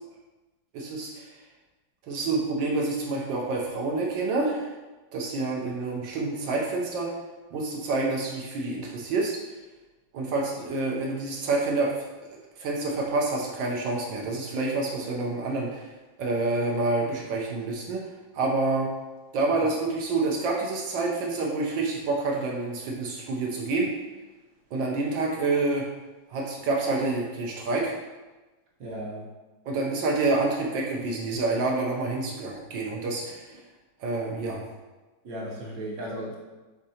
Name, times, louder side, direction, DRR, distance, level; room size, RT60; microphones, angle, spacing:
voice 1, 0.7-1.4 2.1-4.7 5.1-7.1 7.5-9.4 10.1-11.9 12.2-15.9 16.2-18.0 18.3-18.9 19.3-23.9 24.7-25.9 26.3-27.9 29.7-33.5 34.0-34.6, right 3 dB, 80° right, -2 dB, 1.4 m, -28 dB
voice 2, 28.8-29.3 35.2-36.4, right 1 dB, 60° right, -4 dB, 1.2 m, -36 dB
5.3 x 3.6 x 2.7 m, 1.2 s
omnidirectional pair, 2.0 m